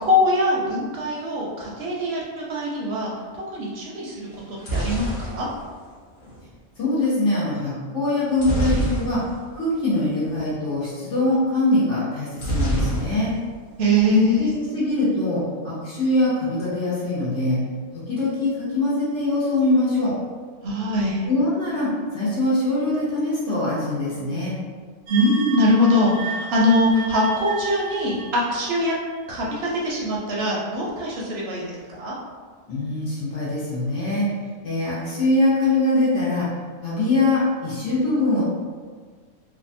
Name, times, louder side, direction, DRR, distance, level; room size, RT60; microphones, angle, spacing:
voice 1, 0.1-5.5 13.8-14.5 20.6-21.2 25.1-28.9 29.3-32.2, left 1 dB, 65° right, -4 dB, 0.7 m, -22 dB
sound 1, 4.3-6.4 8.4-9.5 9.8-10.0 10.2-10.4 12.4-13.5 13.8-14.4, right 1 dB, 55° left, 0.7 m, -26 dB
voice 2, 6.8-9.2 9.5-13.3 14.1-17.6 18.1-20.1 21.2-24.5 32.7-34.2 34.6-36.5 36.8-38.4, left 2 dB, 70° left, -8 dB, 1.0 m, -23 dB
glass pad reverb, 25.1-29.5, right 4 dB, 85° right, 1.0 m, -34 dB
2.7 x 2.2 x 2.5 m, 1.5 s
omnidirectional pair, 1.3 m